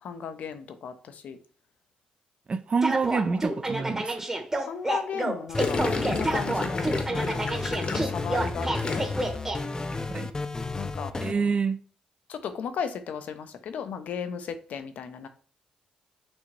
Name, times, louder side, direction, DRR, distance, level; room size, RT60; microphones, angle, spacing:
voice 1, 0.0-1.4 4.7-9.1 10.8-11.1 12.3-15.3, left 7 dB, 75° left, 0.6 m, -36 dB
voice 2, 2.5-4.1 10.1-10.3 11.2-11.8, right 5 dB, 45° right, 0.5 m, -27 dB
sound 1, 2.8-9.6, right 2 dB, 20° right, 1.0 m, -29 dB
sound 2, 5.5-11.3, left 3 dB, 25° left, 0.5 m, -33 dB
Gurgling, 5.6-9.4 9.6-10.0, left 3 dB, 45° left, 0.9 m, -31 dB
6.0 x 2.7 x 3.1 m
supercardioid pair, 60°, 3 cm